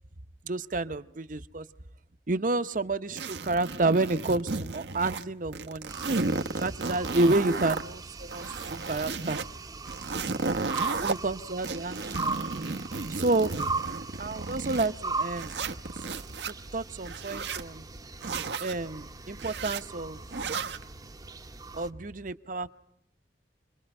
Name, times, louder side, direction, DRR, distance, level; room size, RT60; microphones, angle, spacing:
voice 1, 0.4-1.7 2.3-5.9 6.6-8.5 8.9-9.4 11.0-12.5 13.1-13.6 14.2-15.6 16.5-17.8 18.6-20.2 21.7-22.7, right 2 dB, 50° right, 10 dB, 0.9 m, -29 dB
sound 1, 3.2-5.3 5.5-7.8 8.2-9.4 9.8-11.1 11.6-14.9 15.4-16.5 17.0-17.6 18.2-18.8 19.3-19.8 20.3-20.8, right 3 dB, 80° right, 1.1 m, -33 dB
sound 2, 5.9-21.9, right 3 dB, 20° right, 0.9 m, -39 dB
29.0 x 22.0 x 5.5 m, 0.75 s
head